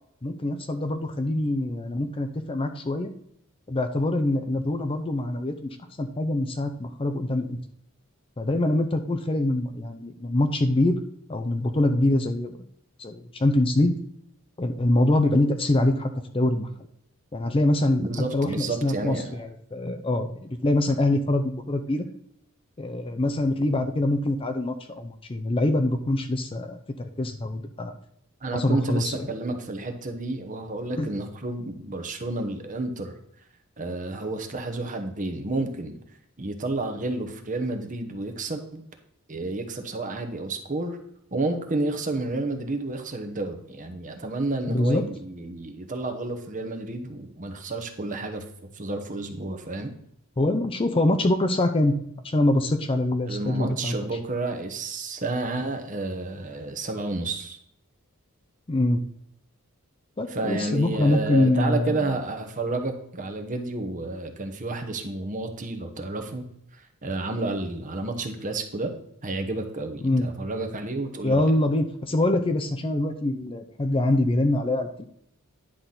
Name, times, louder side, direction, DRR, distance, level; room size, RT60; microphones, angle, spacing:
voice 1, 0.2-3.1 3.7-7.6 8.4-11.0 11.3-12.6 13.0-13.9 14.6-16.7 17.3-18.1 18.3-22.0 22.8-27.9 28.5-29.1 30.9-31.1 44.7-45.0 50.4-52.0 52.2-54.0 58.7-59.0 60.2-62.1 70.0-70.3 71.2-75.0, left 1 dB, 25° left, 7 dB, 0.6 m, -24 dB
voice 2, 18.0-19.4 28.4-33.1 33.8-36.0 36.4-38.8 39.3-41.0 41.3-48.4 48.7-49.9 53.3-57.6 60.3-66.5 66.7-68.9 69.2-71.5, right 2 dB, 35° right, 6 dB, 1.0 m, -30 dB
10.0 x 5.9 x 3.9 m, 0.73 s
head